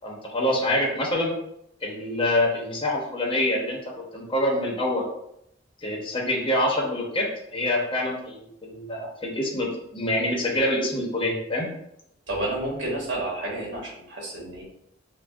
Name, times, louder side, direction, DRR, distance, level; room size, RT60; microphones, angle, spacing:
voice 1, 0.0-1.3 1.8-3.8 4.1-5.0 5.8-7.3 7.5-11.7, left 1 dB, 30° left, -2 dB, 0.8 m, -26 dB
voice 2, 12.3-14.6, right 1 dB, 70° right, -3 dB, 1.4 m, -30 dB
5.8 x 2.1 x 2.4 m, 0.78 s
head